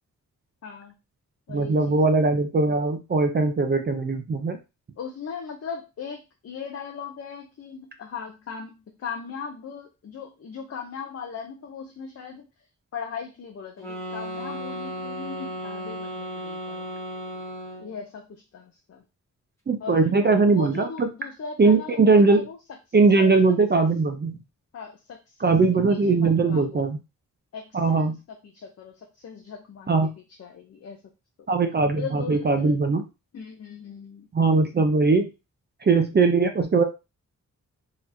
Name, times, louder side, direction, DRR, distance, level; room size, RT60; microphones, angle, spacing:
voice 1, 0.6-0.9 1.5-2.0 5.0-12.5 12.9-16.9 17.8-19.0 19.8-22.6 22.9-23.4 23.7-23.8 24.7-26.9 27.5-29.9 30.4-31.0 31.9-32.8 33.3-34.3, left 6 dB, 50° left, 2 dB, 0.6 m, -39 dB
voice 2, 1.5-4.6 19.7-21.1 21.6-22.5 22.9-24.4 25.4-27.0 27.7-28.2 29.9-30.1 31.5-33.0 34.3-35.3 35.8-36.8, right 3 dB, 35° right, 6 dB, 0.4 m, -20 dB
sound 1, 13.8-18.0, equal, 10° left, 1.3 m, -35 dB
4.0 x 2.9 x 2.6 m, 0.27 s
wide cardioid pair, 140°, 31 cm